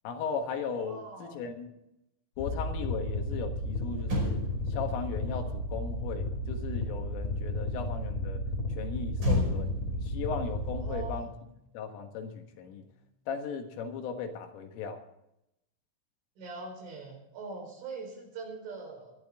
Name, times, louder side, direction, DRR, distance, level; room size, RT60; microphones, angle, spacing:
voice 1, 0.1-1.7 2.4-4.4 4.7-8.4 8.8-9.7 10.0-11.3 11.7-12.8 13.3-15.0, left 6 dB, 75° left, 4 dB, 4.1 m, -37 dB
voice 2, 0.8-1.4 10.8-11.3 16.4-19.1, right 3 dB, 65° right, 3 dB, 6.6 m, -42 dB
sound 1, 2.4-11.1, left 1 dB, 55° left, 3.7 m, -33 dB
Motor vehicle (road), 4.0-7.5 9.2-11.8 12.0-12.3, left 1 dB, 25° right, 5.3 m, -35 dB
21.0 x 13.0 x 3.7 m, 0.84 s
omnidirectional pair, 6.0 m